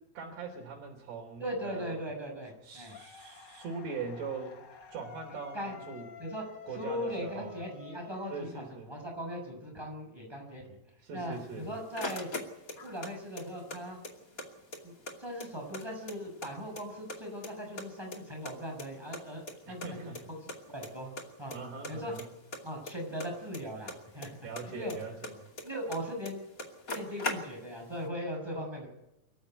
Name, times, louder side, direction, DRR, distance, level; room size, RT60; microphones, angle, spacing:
voice 1, 0.2-2.0 2.6-4.6 4.9-6.1 6.6-7.6 8.3-8.9 11.0-11.7 19.7-20.3 21.5-22.3 24.4-25.4, right 4 dB, 85° right, -2 dB, 5.3 m, -41 dB
voice 2, 1.4-3.0 5.5-5.7 6.2-6.4 6.8-10.8 11.1-12.3 12.8-14.0 14.8-14.9 15.2-20.0 20.7-21.1 21.4-21.6 21.9-22.1 22.6-24.3 24.7-25.0 25.6-26.4 26.9-28.9, equal, 5° right, 1 dB, 6.6 m, -39 dB
sound 1, 2.9-9.0, left 8 dB, 75° left, 1.0 m, -51 dB
sound 2, 11.4-13.1 13.4-14.5 14.7-14.8 15.1-16.5 16.7-17.5 17.8-19.2 19.5-19.6 19.8-19.9 20.1-20.2 20.5-20.9 21.2-21.6 21.8-24.3 24.5-26.0 26.2-26.3 26.6-27.8, left 2 dB, 25° left, 2.3 m, -39 dB
24.5 x 15.0 x 9.3 m, 0.91 s
omnidirectional pair, 4.5 m